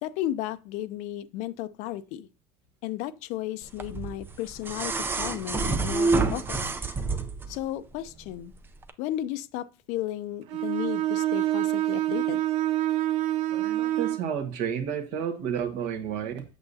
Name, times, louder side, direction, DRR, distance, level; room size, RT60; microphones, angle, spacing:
voice 1, 0.0-2.3 2.8-6.7 7.5-8.5 9.0-12.4, left 13 dB, 60° left, 0.6 m, -34 dB
sound 1, 3.8-7.6 8.8-8.9, right 3 dB, 15° right, 0.5 m, -28 dB
Bowed string instrument, 10.5-14.3, right 14 dB, 75° right, 0.7 m, -26 dB
voice 2, 13.5-16.4, right 8 dB, 60° right, 1.4 m, -31 dB
8.1 x 6.7 x 2.7 m
supercardioid pair, 140°, 14 cm